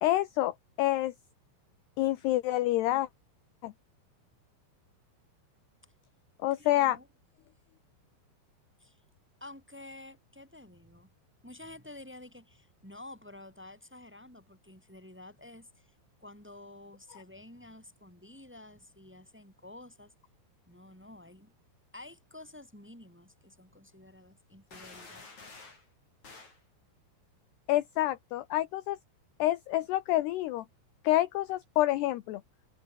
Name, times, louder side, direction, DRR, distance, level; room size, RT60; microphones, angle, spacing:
voice 1, 0.0-1.1 2.0-3.1 3.6-3.7 6.4-7.0 27.7-29.0 29.4-30.6 31.0-32.4, left 15 dB, 75° left, 2.5 m, -28 dB
voice 2, 6.5-7.1 8.8-9.0 9.4-11.1 11.4-15.9 16.2-20.1 20.7-21.5 21.9-25.3, left 1 dB, 5° right, 3.6 m, -50 dB
sound 1, 24.7-25.9 26.2-26.6, left 3 dB, 35° left, 8.2 m, -50 dB
omnidirectional pair, 5.8 m